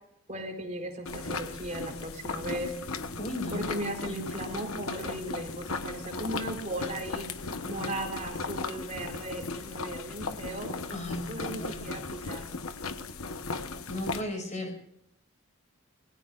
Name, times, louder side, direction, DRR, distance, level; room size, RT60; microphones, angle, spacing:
voice 1, 0.3-2.7 3.5-7.3 7.6-12.4 14.4-14.7, right 1 dB, 35° right, 1 dB, 4.2 m, -37 dB
sound 1, 1.0-14.2, left 3 dB, 90° left, 1.2 m, -37 dB
voice 2, 3.2-3.7 10.9-12.0 13.9-14.8, left 1 dB, 35° left, 4 dB, 6.0 m, -36 dB
27.0 x 20.0 x 2.5 m, 0.74 s
head